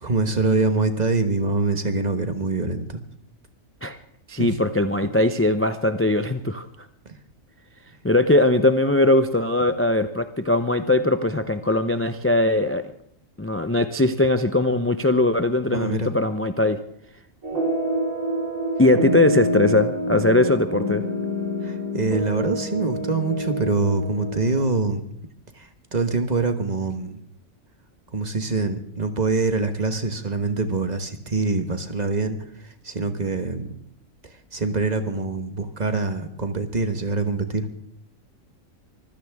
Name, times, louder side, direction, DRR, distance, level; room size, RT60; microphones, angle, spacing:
voice 1, 0.0-3.0 4.4-4.5 7.0-7.1 15.7-16.1 21.6-25.0 25.5-27.2 28.1-33.7 34.2-37.7, right 3 dB, 35° right, 7 dB, 1.3 m, -25 dB
voice 2, 4.3-6.7 8.0-12.8 13.4-16.8 18.8-21.0, left 2 dB, 20° left, 9 dB, 0.4 m, -20 dB
sound 1, 17.4-24.6, equal, 85° right, 4.7 m, -27 dB
24.5 x 15.5 x 3.5 m, 0.72 s
omnidirectional pair, 1.4 m